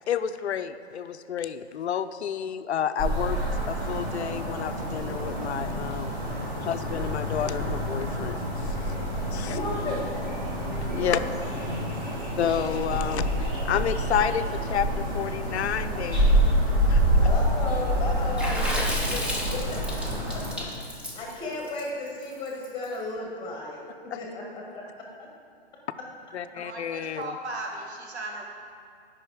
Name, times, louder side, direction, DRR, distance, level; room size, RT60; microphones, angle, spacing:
voice 1, 0.1-3.4 3.7-6.1 6.6-8.4 9.3-9.6 10.9-11.2 12.4-16.4 16.9-17.0 24.1-24.2 26.3-27.3, left 8 dB, 80° left, 11 dB, 0.5 m, -30 dB
sound 1, 3.0-20.5, equal, 25° right, 1.8 m, -27 dB
voice 2, 9.4-10.4 11.0-11.2 11.5-11.6 17.2-20.4 21.1-23.8 24.1-25.3, left 2 dB, 15° left, -1 dB, 1.3 m, -35 dB
Water / Splash splatter, 18.4-22.8, left 1 dB, 5° right, 0.5 m, -32 dB
voice 3, 26.5-28.5, right 2 dB, 80° right, 0 dB, 1.6 m, -36 dB
8.3 x 5.4 x 4.7 m, 2.3 s
hypercardioid pair, 135°, 33 cm